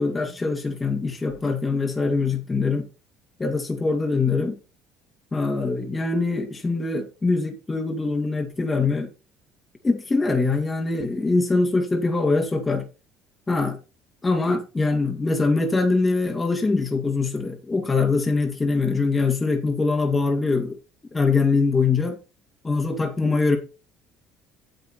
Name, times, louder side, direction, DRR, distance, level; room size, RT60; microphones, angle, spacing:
voice 1, 0.0-2.9 3.4-4.6 5.3-9.1 9.8-12.9 13.5-13.8 14.2-20.8 21.1-22.2 22.6-23.6, left 3 dB, 20° left, 2.5 m, -23 dB
9.5 x 7.8 x 4.4 m
supercardioid pair, 80°, 0 cm